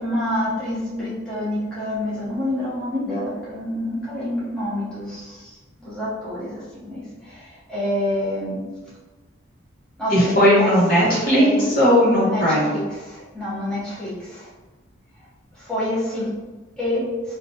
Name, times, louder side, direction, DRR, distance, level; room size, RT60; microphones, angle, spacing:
voice 1, 0.0-5.2 5.8-6.6 6.9-7.0 7.7-8.6 10.0-10.1 10.6-10.7 11.4-11.6 12.2-12.4 12.7-12.8 13.3-14.1 15.7-16.3 16.8-17.0, left 1 dB, 5° left, -11 dB, 0.9 m, -26 dB
voice 2, 10.1-12.7, equal, 45° left, -9 dB, 1.1 m, -17 dB
3.0 x 2.5 x 2.7 m, 1.2 s
head